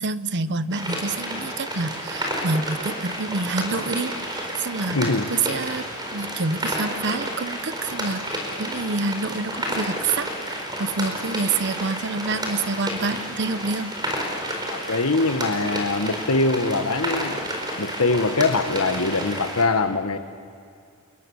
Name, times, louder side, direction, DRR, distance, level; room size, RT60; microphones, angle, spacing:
voice 1, 0.0-5.9 6.1-14.0, right 3 dB, 55° right, 13 dB, 0.9 m, -27 dB
sound 1, 0.7-19.6, equal, 20° right, 4.5 m, -30 dB
voice 2, 4.9-5.3 14.7-17.4 17.8-20.2, left 3 dB, 80° left, 8 dB, 1.6 m, -23 dB
29.5 x 22.0 x 7.3 m, 2.3 s
head